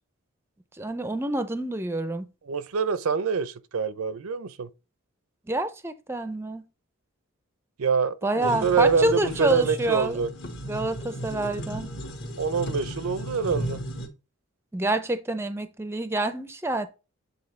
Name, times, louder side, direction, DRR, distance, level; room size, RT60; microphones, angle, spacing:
voice 1, 0.8-2.3 5.5-6.6 8.2-10.2 10.6-11.9 14.7-16.9, right 2 dB, 10° right, 0.4 m, -27 dB
voice 2, 2.5-4.7 7.8-10.3 12.4-13.8, right 5 dB, 90° right, 0.6 m, -25 dB
sound 1, 8.4-14.1, equal, 55° left, 1.4 m, -35 dB
8.1 x 4.0 x 3.2 m
head